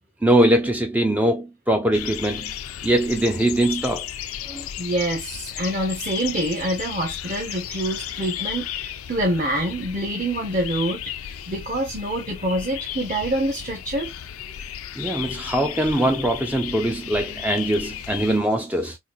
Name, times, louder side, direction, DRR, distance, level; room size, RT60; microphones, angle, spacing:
voice 1, 0.2-2.5 2.8-4.0 4.5-4.7 15.0-19.0, right 1 dB, 5° right, 0.3 m, -22 dB
sound 1, 1.9-18.4, left 10 dB, 90° left, 0.5 m, -34 dB
voice 2, 4.8-11.0 11.5-14.1, right 1 dB, 35° right, 0.9 m, -26 dB
4.0 x 2.5 x 2.4 m
head